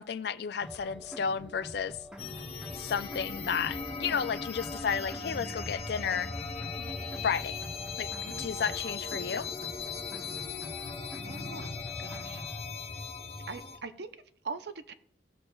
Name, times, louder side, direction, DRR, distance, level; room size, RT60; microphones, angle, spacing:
voice 1, 0.0-2.0 2.7-6.3 7.2-7.6 8.0-9.5, left 6 dB, 55° left, 0.3 m, -32 dB
sound 1, 0.6-12.6, equal, 5° right, 0.9 m, -46 dB
sound 2, 2.2-13.8, left 4 dB, 35° left, 0.8 m, -38 dB
voice 2, 11.2-11.7 12.0-12.4 13.5-14.9, right 4 dB, 55° right, 0.5 m, -42 dB
17.0 x 6.4 x 2.3 m
head